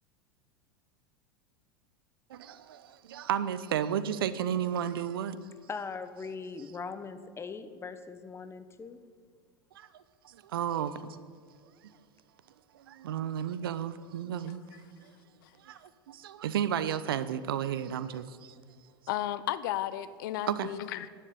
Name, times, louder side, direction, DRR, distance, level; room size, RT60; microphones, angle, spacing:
voice 1, 2.3-5.4 9.7-11.2 12.7-14.6 15.6-18.5 20.5-20.7, right 9 dB, 75° right, 14 dB, 0.8 m, -33 dB
voice 2, 5.7-9.0, left 5 dB, 20° left, 11 dB, 1.1 m, -40 dB
voice 3, 19.1-21.1, left 13 dB, 65° left, 16 dB, 0.7 m, -33 dB
11.5 x 9.9 x 8.8 m, 2.1 s
hypercardioid pair, 85°, 12 cm